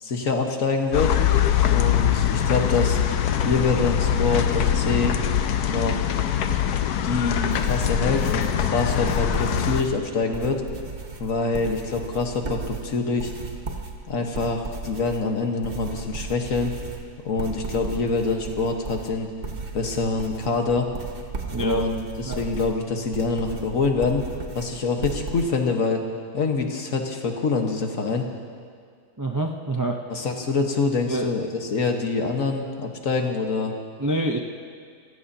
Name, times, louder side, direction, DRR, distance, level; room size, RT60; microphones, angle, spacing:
voice 1, 0.0-1.2 1.6-3.0 3.4-5.2 5.7-6.2 7.0-10.6 11.2-13.3 14.1-16.7 17.3-19.3 19.7-20.9 21.6-24.2 24.6-26.0 26.3-28.3 30.1-33.7, left 4 dB, 60° left, 3 dB, 1.7 m, -25 dB
sound 1, 0.9-9.8, left 9 dB, 85° left, 1.2 m, -23 dB
sound 2, 7.5-25.4, right 4 dB, 40° right, 1.4 m, -36 dB
voice 2, 21.5-21.9 22.2-22.4 29.2-30.0 31.1-31.3 34.0-34.4, right 1 dB, 25° right, 2 dB, 0.4 m, -26 dB
27.0 x 15.0 x 2.8 m, 2.1 s
omnidirectional pair, 1.6 m